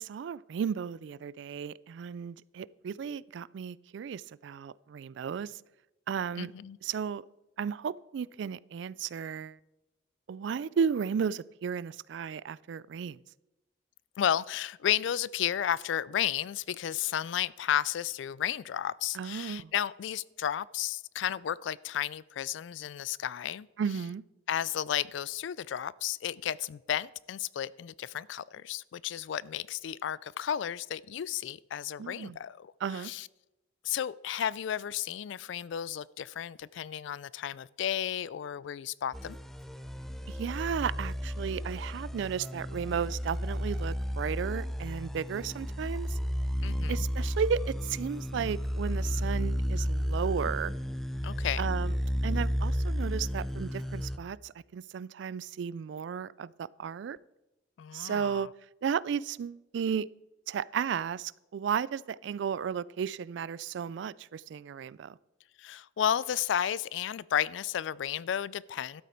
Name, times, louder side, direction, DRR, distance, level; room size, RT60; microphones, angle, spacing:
voice 1, 0.0-5.6 6.1-6.5 6.8-7.2 7.6-9.6 10.3-13.2 19.1-19.7 23.8-24.2 32.0-32.4 32.8-33.1 40.3-46.2 46.9-50.7 51.6-51.9 52.2-57.2 57.9-58.5 58.8-60.1 60.5-65.2, right 7 dB, 65° right, 0.3 m, -34 dB
voice 2, 6.4-6.8 14.2-23.7 24.5-33.3 33.8-39.4 46.6-47.1 51.2-51.6 57.8-58.5 65.6-69.0, left 10 dB, 70° left, 0.3 m, -33 dB
sound 1, 39.1-54.2, equal, ahead, 0.4 m, -33 dB
12.5 x 8.3 x 4.4 m
head